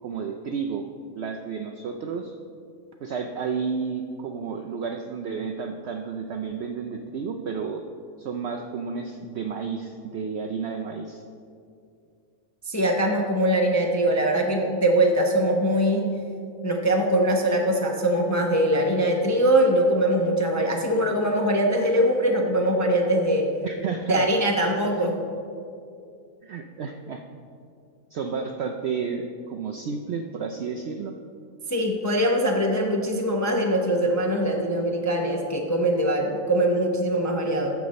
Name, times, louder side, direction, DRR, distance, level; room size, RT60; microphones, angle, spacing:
voice 1, 0.0-0.9 1.2-2.3 3.0-7.8 8.2-11.2 23.6-24.3 24.9-25.1 26.4-27.2 28.1-31.2, right 5 dB, 70° right, 4 dB, 0.6 m, -31 dB
voice 2, 12.7-16.1 16.6-23.5 24.1-25.2 31.7-37.7, right 1 dB, 20° left, 0 dB, 0.5 m, -22 dB
14.5 x 5.9 x 4.1 m, 2.5 s
omnidirectional pair, 1.6 m